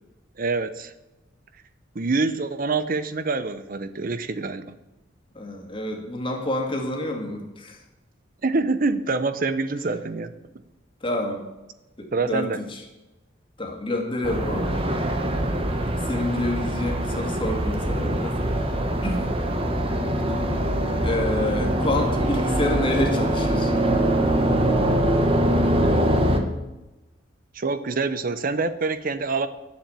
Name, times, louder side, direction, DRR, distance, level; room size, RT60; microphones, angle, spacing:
voice 1, 0.4-0.9 1.9-4.7 8.4-10.3 12.1-12.6 27.5-29.5, right 3 dB, 50° right, 12 dB, 0.7 m, -26 dB
voice 2, 5.3-7.8 11.0-11.4 12.0-12.8 13.6-14.8 16.1-18.3 19.0-19.3 21.0-23.7, left 1 dB, 25° left, 2 dB, 2.2 m, -28 dB
sound 1, 14.2-26.4, right 1 dB, 30° right, 1.3 m, -23 dB
10.5 x 7.5 x 8.8 m, 1.0 s
head